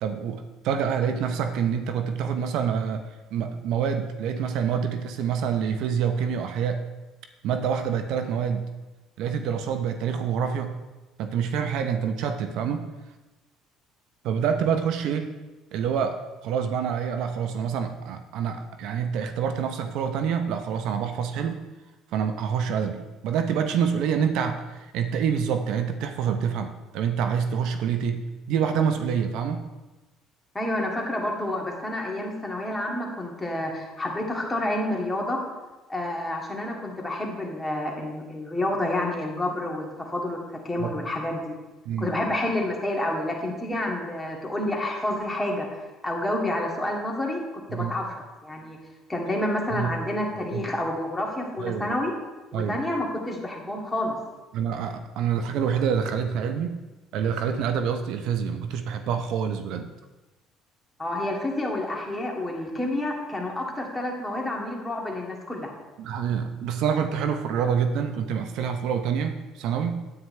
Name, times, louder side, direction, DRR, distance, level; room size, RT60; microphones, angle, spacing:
voice 1, 0.0-3.0 3.3-6.8 7.4-8.7 9.2-10.7 11.2-12.9 14.2-15.3 15.7-16.2 16.4-21.6 22.1-29.6 40.8-40.9 41.9-42.1 47.7-47.9 49.7-49.9 50.5-50.6 51.6-51.9 52.5-52.8 54.5-56.8 57.1-59.9 66.0-70.0, right 7 dB, 70° right, 7 dB, 0.7 m, -27 dB
voice 2, 30.5-35.4 35.9-41.6 42.0-45.7 46.0-47.4 47.7-48.1 48.4-48.8 49.1-52.1 52.5-54.1 61.0-65.7, left 1 dB, 15° left, -1 dB, 2.3 m, -29 dB
9.5 x 8.9 x 3.3 m, 1.1 s
supercardioid pair, 80°, 0 cm